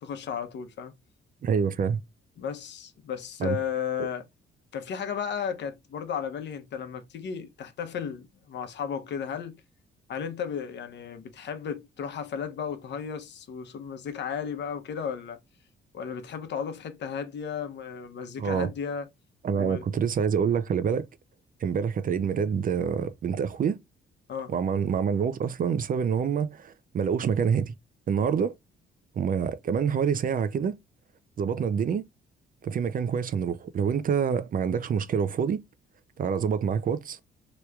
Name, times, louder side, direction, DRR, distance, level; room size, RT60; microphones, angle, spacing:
voice 1, 0.0-1.0 2.4-4.2 4.7-9.6 10.1-15.4 15.9-19.1 19.5-19.8 24.3-24.5, left 7 dB, 65° left, 0.8 m, -34 dB
voice 2, 1.4-2.0 3.4-3.6 18.4-18.7 19.4-21.1 21.6-23.8 24.5-27.7 28.1-28.6 29.2-30.8 31.4-32.0 32.6-35.6 36.2-37.2, right 7 dB, 45° right, 0.5 m, -26 dB
3.2 x 3.0 x 2.3 m
cardioid pair, 90°, 20 cm